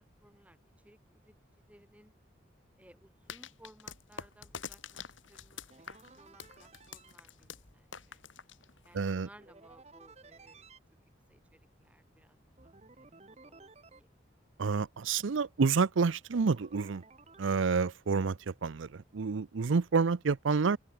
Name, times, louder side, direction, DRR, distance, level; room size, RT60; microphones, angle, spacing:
voice 1, 0.0-1.3 1.7-2.1 2.8-8.2 8.8-10.7 11.3-12.4 12.6-14.1, right 1 dB, 5° right, 6.3 m, -61 dB
sound 1, 3.3-9.1, left 6 dB, 80° left, 2.7 m, -47 dB
sound 2, 5.7-7.1 9.4-10.8 12.6-14.0 16.3-17.7, right 3 dB, 35° right, 1.2 m, -56 dB
voice 2, 8.9-9.3 14.6-17.0 17.4-20.8, right 5 dB, 80° right, 0.5 m, -29 dB
open air
head